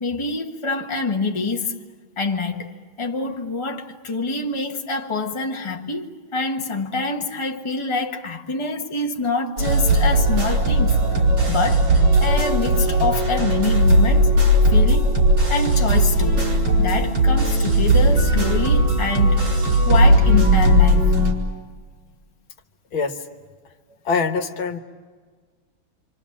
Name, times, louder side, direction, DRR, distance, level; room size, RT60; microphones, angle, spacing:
voice 1, 0.0-1.7 2.2-11.0 11.5-14.3 14.7-15.2 15.5-16.4 16.8-19.4 19.8-21.3, left 3 dB, 15° left, 1.3 m, -26 dB
sound 1, 9.6-21.3, right 1 dB, 75° right, 5.4 m, -17 dB
voice 2, 24.1-24.8, left 5 dB, 75° left, 2.0 m, -23 dB
27.5 x 26.5 x 7.4 m
omnidirectional pair, 2.2 m